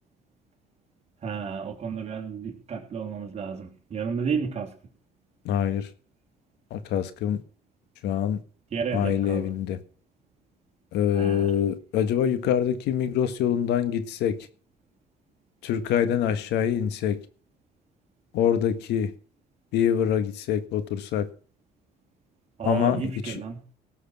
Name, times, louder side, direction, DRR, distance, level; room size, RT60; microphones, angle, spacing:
voice 1, 1.2-4.7 8.7-9.6 11.1-11.5 22.6-23.6, right 6 dB, 40° right, 2 dB, 3.3 m, -32 dB
voice 2, 5.4-5.9 6.7-7.4 8.0-8.4 8.9-9.8 10.9-14.4 15.6-17.2 18.3-19.1 19.7-21.3 22.6-23.4, left 9 dB, 85° left, 11 dB, 1.7 m, -25 dB
18.0 x 6.5 x 6.1 m, 0.43 s
cardioid pair, 110°, 17 cm